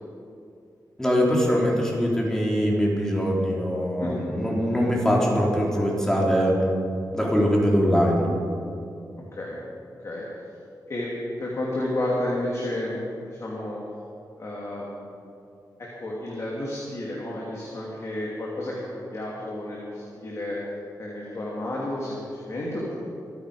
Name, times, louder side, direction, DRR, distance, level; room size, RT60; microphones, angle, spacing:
voice 1, 1.0-6.5 7.1-8.3, equal, 10° left, -3 dB, 3.5 m, -22 dB
voice 2, 10.9-13.8 14.4-15.1 15.8-20.6 21.0-23.0, left 1 dB, 45° left, -5 dB, 2.7 m, -31 dB
25.0 x 9.5 x 5.0 m, 2.5 s
wide cardioid pair, 115°, 7 cm